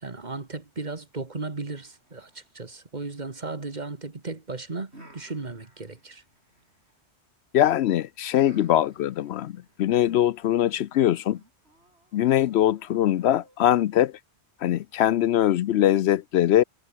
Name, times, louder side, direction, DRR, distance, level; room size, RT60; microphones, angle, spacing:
voice 1, 0.0-6.2, right 3 dB, 40° right, 1.8 m, -36 dB
sound 1, 1.7-3.9 4.9-7.0 8.2-13.8, right 1 dB, 70° right, 7.9 m, -56 dB
voice 2, 7.5-11.4 12.1-14.1 14.6-16.6, left 12 dB, 75° left, 0.8 m, -22 dB
omnidirectional pair, 1.1 m